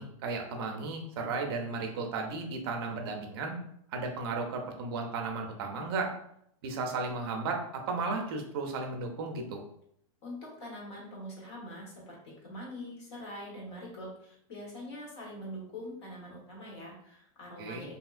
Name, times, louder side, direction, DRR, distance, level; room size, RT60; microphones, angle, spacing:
voice 1, 0.0-3.6 3.9-6.1 6.6-9.6 17.6-17.8, right 3 dB, 45° right, 2 dB, 0.5 m, -34 dB
voice 2, 10.2-17.9, left 1 dB, 50° left, -2 dB, 1.4 m, -44 dB
3.4 x 2.8 x 2.4 m, 0.70 s
supercardioid pair, 165°, 18 cm